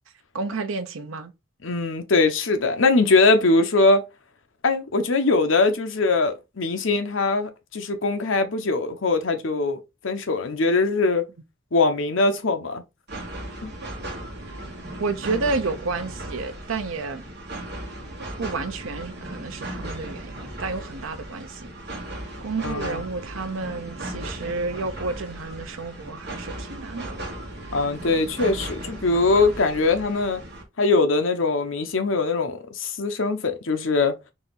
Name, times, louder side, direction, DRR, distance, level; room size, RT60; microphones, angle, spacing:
voice 1, 0.3-1.3 15.0-17.2 18.4-21.7 22.4-27.2, right 3 dB, 85° right, 0.7 m, -30 dB
voice 2, 1.6-4.0 4.6-11.3 11.7-12.8 13.6-13.7 22.6-23.0 27.7-30.4 30.8-34.2, left 3 dB, 75° left, 0.8 m, -22 dB
sound 1, 13.1-30.6, right 1 dB, 55° right, 1.4 m, -36 dB
4.1 x 2.7 x 3.9 m
head